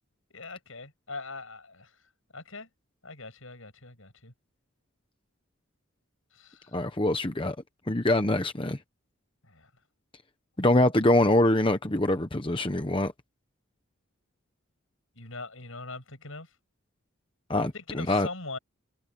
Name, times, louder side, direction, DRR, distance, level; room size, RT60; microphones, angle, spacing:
voice 1, 0.3-2.0 2.3-2.7 3.0-4.3 6.3-6.8 9.4-9.7 15.2-16.5 17.5-18.6, left 3 dB, 70° left, 7.9 m, -42 dB
voice 2, 6.7-7.5 7.9-8.8 10.6-13.1 17.5-18.3, left 1 dB, 25° left, 1.0 m, -24 dB
head